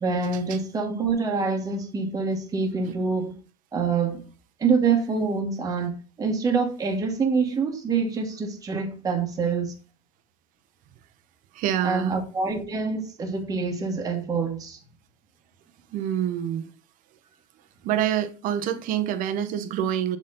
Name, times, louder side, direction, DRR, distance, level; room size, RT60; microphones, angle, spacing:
voice 1, 0.0-3.3 3.7-4.2 4.6-9.7 11.8-14.8, right 4 dB, 20° right, 1.2 m, -26 dB
voice 2, 11.5-12.2 15.9-16.7 17.8-20.2, right 10 dB, 45° right, 0.8 m, -26 dB
7.2 x 4.4 x 3.8 m
supercardioid pair, 140°, 19 cm